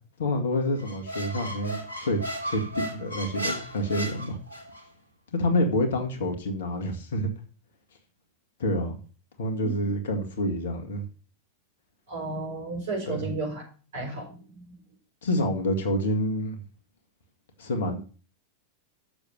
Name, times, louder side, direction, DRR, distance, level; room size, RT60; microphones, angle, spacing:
voice 1, 0.2-2.2 2.5-4.4 5.3-7.3 8.6-9.0 9.4-11.0 13.1-13.3 15.2-16.6 17.6-18.0, left 1 dB, 60° left, 6 dB, 1.8 m, -27 dB
Squeak, 0.8-4.8, equal, 80° left, 1.9 m, -35 dB
voice 2, 12.1-13.6 13.9-14.6, right 3 dB, 60° right, 0 dB, 5.5 m, -33 dB
7.0 x 7.0 x 6.6 m, 0.37 s
figure-of-eight pair, 90°, 0 cm